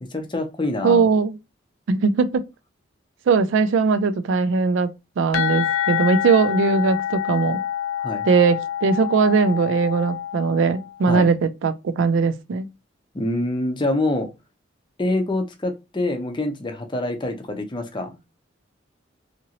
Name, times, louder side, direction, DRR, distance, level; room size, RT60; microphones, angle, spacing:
voice 1, 0.0-1.1 8.0-8.3 11.1-11.3 13.1-14.3 15.0-18.2, left 2 dB, 25° left, 0.5 m, -25 dB
voice 2, 0.8-1.4 1.9-2.5 3.3-7.6 8.3-12.7, right 4 dB, 70° right, 0.3 m, -20 dB
sound 1, 5.3-10.9, left 10 dB, 85° left, 0.5 m, -27 dB
2.8 x 2.6 x 2.8 m
head